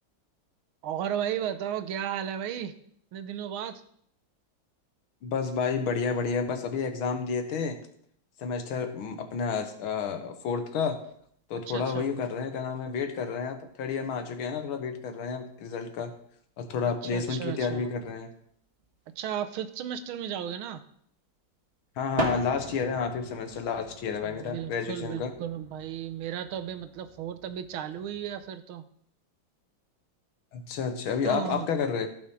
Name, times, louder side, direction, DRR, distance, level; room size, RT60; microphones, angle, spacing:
voice 1, 0.8-2.7 3.1-3.8 11.7-12.1 17.0-17.9 19.1-20.8 24.2-28.9 31.2-31.7, right 9 dB, 90° right, 11 dB, 1.6 m, -34 dB
voice 2, 5.2-7.8 8.4-11.0 11.5-16.1 16.6-18.3 22.0-25.3 30.5-32.1, left 5 dB, 80° left, 7 dB, 1.9 m, -30 dB
sound 1, 11.1-11.9 12.1-12.6 13.6-13.7 13.9-14.0 14.5-14.6 15.5-15.6 15.8-15.9 16.6-16.7 16.9-17.0 17.2-17.3 18.5-19.3 22.1-28.5, right 2 dB, 30° right, 1.8 m, -40 dB
14.5 x 5.7 x 4.8 m, 0.66 s
omnidirectional pair, 2.2 m